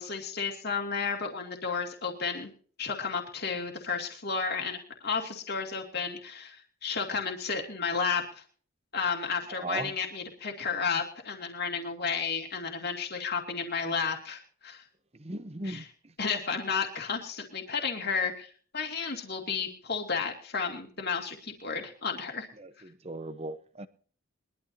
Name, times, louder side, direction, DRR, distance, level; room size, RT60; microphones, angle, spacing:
voice 1, 0.0-2.5 2.8-8.4 8.9-14.8 15.6-15.9 16.2-22.5, left 5 dB, 50° left, 1 dB, 2.6 m, -32 dB
voice 2, 9.6-9.9 15.2-15.8 23.0-23.9, right 2 dB, 30° right, 12 dB, 0.9 m, -36 dB
22.0 x 12.5 x 2.8 m, 0.44 s
head